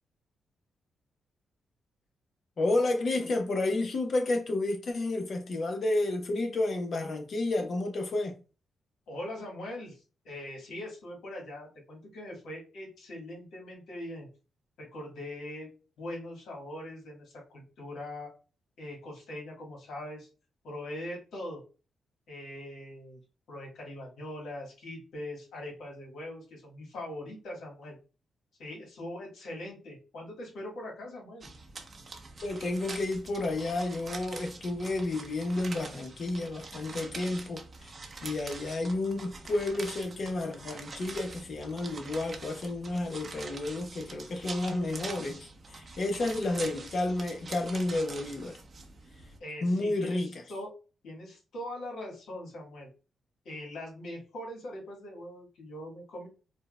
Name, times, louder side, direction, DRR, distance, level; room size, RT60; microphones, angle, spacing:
voice 1, 2.6-8.3 32.4-37.9 38.2-48.6 49.6-50.4, left 2 dB, 60° left, 0.8 m, -31 dB
voice 2, 9.1-14.3 14.8-15.7 16.0-18.3 18.8-20.3 20.6-21.6 22.3-23.2 23.5-28.0 28.6-31.5 49.4-50.7 51.0-52.9 53.4-56.3, left 1 dB, 75° left, 1.4 m, -41 dB
sound 1, 31.4-49.4, right 3 dB, 45° right, 0.6 m, -45 dB
4.3 x 2.2 x 2.2 m
supercardioid pair, 60°, 0 cm